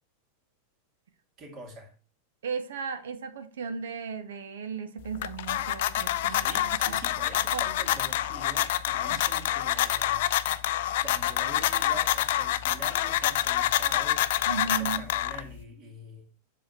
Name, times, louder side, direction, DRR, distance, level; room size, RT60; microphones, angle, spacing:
voice 1, 1.4-1.9 6.3-10.3 10.6-16.3, right 1 dB, 30° right, 2.3 m, -45 dB
voice 2, 2.4-7.0 7.5-7.6 9.0-9.5 14.4-15.0, right 6 dB, 60° right, 1.0 m, -36 dB
sound 1, 5.0-15.6, left 13 dB, 55° left, 0.4 m, -27 dB
7.3 x 7.0 x 2.8 m
figure-of-eight pair, 90°, 0 cm